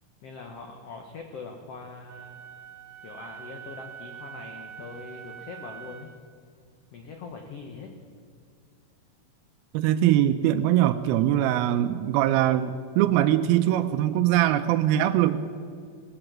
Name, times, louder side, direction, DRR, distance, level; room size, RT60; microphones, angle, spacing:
voice 1, 0.2-2.4 3.0-6.1 6.9-7.9, left 4 dB, 80° left, 3 dB, 1.3 m, -42 dB
Wind instrument woodwind instrument, 2.1-6.2, right 9 dB, 65° right, 1.7 m, -44 dB
voice 2, 9.7-15.4, right 12 dB, 85° right, 8 dB, 2.5 m, -22 dB
19.0 x 7.9 x 7.3 m, 2.2 s
omnidirectional pair, 4.3 m